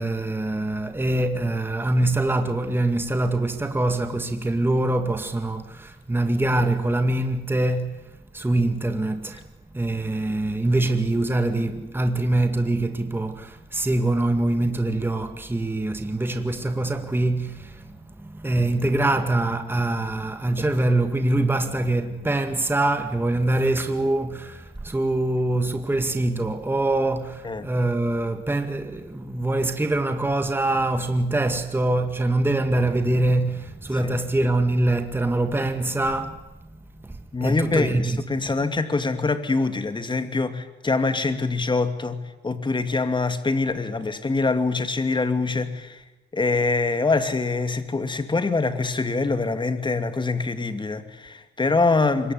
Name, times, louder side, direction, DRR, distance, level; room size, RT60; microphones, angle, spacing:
voice 1, 0.0-9.4 9.7-38.2 38.6-38.7, right 2 dB, 10° right, 2.0 m, -24 dB
voice 2, 37.3-42.2 42.4-46.0 46.3-52.3, left 3 dB, 25° left, 2.7 m, -24 dB
25.0 x 23.0 x 9.6 m
cardioid pair, 90°, 20 cm